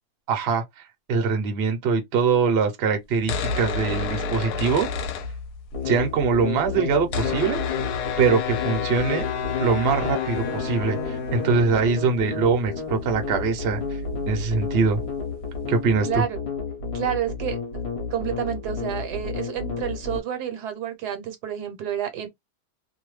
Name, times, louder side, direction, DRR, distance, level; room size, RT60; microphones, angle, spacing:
voice 1, 0.3-0.6 1.1-4.9 5.8-7.6 8.2-9.3 9.6-13.8 14.3-15.0 15.7-16.2, right 5 dB, 55° right, 0.7 m, -23 dB
sound 1, 3.1-5.9 6.1-6.2 6.4-15.8, left 4 dB, 75° left, 1.1 m, -31 dB
sound 2, 5.7-20.2, left 6 dB, 45° left, 1.0 m, -31 dB
voice 2, 16.0-16.4 16.9-17.8 18.1-22.3, right 10 dB, 75° right, 1.2 m, -29 dB
2.7 x 2.1 x 3.1 m
omnidirectional pair, 1.8 m